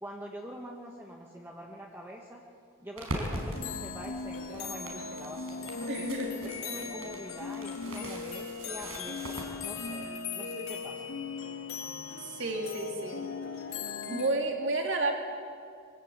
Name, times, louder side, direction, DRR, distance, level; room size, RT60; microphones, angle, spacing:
voice 1, 0.0-2.4 2.8-6.1 6.4-9.3 9.6-11.1, equal, 10° right, -1 dB, 1.4 m, -45 dB
sound 1, 3.0-9.7, right 1 dB, 90° right, 4.9 m, -41 dB
sound 2, 3.5-14.3, left 5 dB, 80° left, 2.0 m, -38 dB
voice 2, 5.9-6.4 12.3-13.3 14.0-15.1, right 2 dB, 60° right, 1 dB, 3.2 m, -31 dB
24.0 x 15.5 x 8.9 m, 2.3 s
head